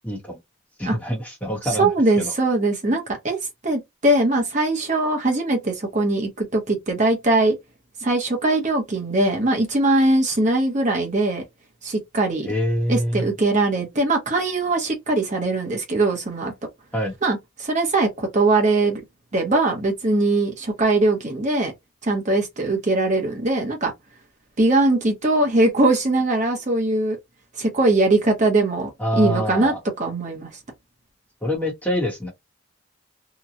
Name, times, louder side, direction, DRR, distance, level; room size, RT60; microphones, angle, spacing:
voice 1, 0.0-0.4 0.8-1.9 2.2-2.3 2.9-3.0 12.4-13.3 16.9-17.1 29.0-29.8 31.4-32.3, equal, 5° left, 1.1 m, -25 dB
voice 2, 1.6-3.4 3.6-7.5 8.0-11.4 11.8-12.5 12.9-16.5 17.2-19.0 19.3-21.7 22.0-23.9 24.6-27.2 27.6-28.9 29.1-30.5, right 2 dB, 35° right, 0.9 m, -21 dB
2.9 x 2.3 x 2.4 m
head